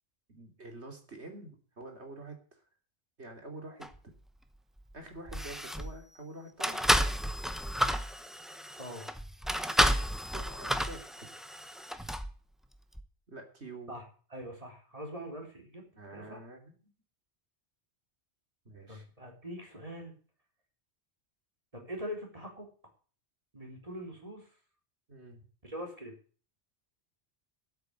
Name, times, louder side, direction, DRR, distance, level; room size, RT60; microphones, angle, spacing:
voice 1, 0.3-2.6 3.2-3.9 4.9-6.8 10.3-11.3 13.3-14.0 16.0-16.9 18.7-19.1 25.1-25.5, right 2 dB, 75° right, 3 dB, 3.6 m, -47 dB
sound 1, 3.8-4.0 4.8-4.9 5.3-6.0 6.6-12.3 12.9-13.0, equal, ahead, 0.8 m, -31 dB
voice 2, 14.3-15.8 16.1-16.4 18.9-20.1 21.7-22.7 23.5-24.5 25.6-26.1, equal, 30° right, 1 dB, 4.0 m, -42 dB
12.5 x 8.3 x 8.3 m, 0.41 s
omnidirectional pair, 1.1 m